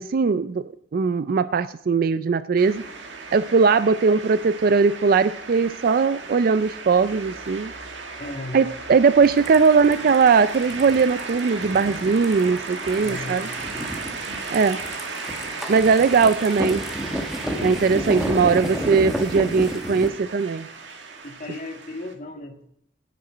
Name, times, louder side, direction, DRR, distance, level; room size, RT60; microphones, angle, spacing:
voice 1, 0.0-2.8 3.3-7.7 8.5-13.5 14.5-14.8 15.7-16.8 17.6-20.7, right 5 dB, 50° right, 13 dB, 0.4 m, -20 dB
sound 1, 2.6-22.1, right 4 dB, 80° right, 1.8 m, -35 dB
voice 2, 8.2-8.7 13.0-13.9 21.2-22.7, left 2 dB, 45° left, 3 dB, 1.7 m, -36 dB
sound 2, 9.2-20.1, equal, ahead, 1.2 m, -32 dB
16.5 x 6.8 x 5.0 m, 0.74 s
head